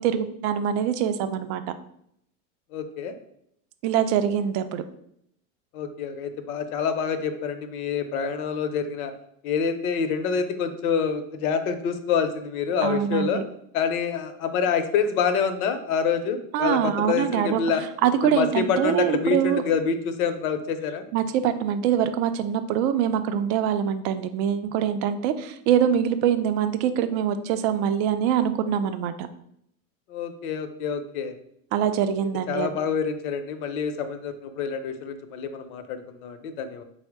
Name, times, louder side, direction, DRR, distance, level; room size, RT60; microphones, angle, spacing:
voice 1, 0.0-1.6 3.8-4.8 12.8-13.4 16.5-17.6 18.0-19.6 21.1-29.3 31.7-32.7, right 9 dB, 55° right, 10 dB, 0.5 m, -24 dB
voice 2, 2.7-3.1 5.7-9.1 9.4-13.4 13.7-17.8 18.2-21.1 30.1-31.3 32.5-36.8, left 6 dB, 80° left, 8 dB, 0.7 m, -27 dB
4.3 x 2.1 x 4.6 m, 0.73 s
supercardioid pair, 145°, 43 cm